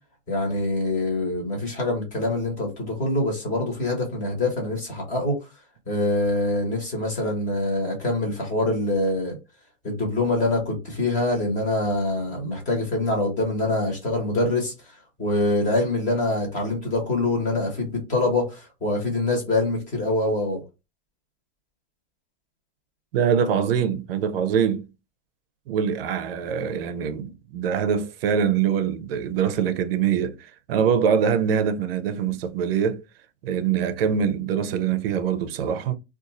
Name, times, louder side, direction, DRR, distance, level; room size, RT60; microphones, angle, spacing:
voice 1, 0.3-5.4 5.9-9.4 9.8-20.6, left 2 dB, 20° left, 1.1 m, -25 dB
voice 2, 23.1-24.9 25.7-33.0 33.4-35.9, right 7 dB, 55° right, 0.5 m, -24 dB
2.5 x 2.4 x 4.1 m
supercardioid pair, 170°, 36 cm